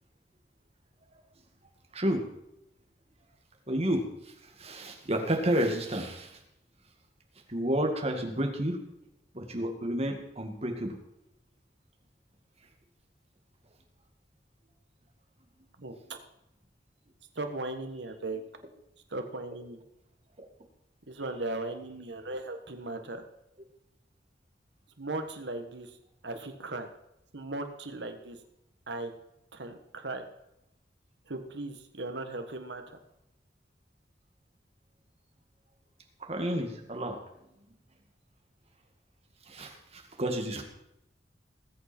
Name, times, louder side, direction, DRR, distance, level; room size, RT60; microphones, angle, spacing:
voice 1, 1.9-2.2 3.7-4.3 4.6-6.4 7.5-8.8 9.3-11.0 20.4-20.5 36.2-37.2 39.5-40.6, right 1 dB, 35° right, 3 dB, 2.1 m, -30 dB
voice 2, 17.3-18.4 19.1-19.8 21.1-23.2 25.0-25.9 26.2-26.9 27.3-28.4 28.9-29.1 29.5-30.2 31.3-32.8, right 2 dB, 75° right, 6 dB, 1.5 m, -37 dB
20.0 x 8.4 x 4.5 m, 0.83 s
head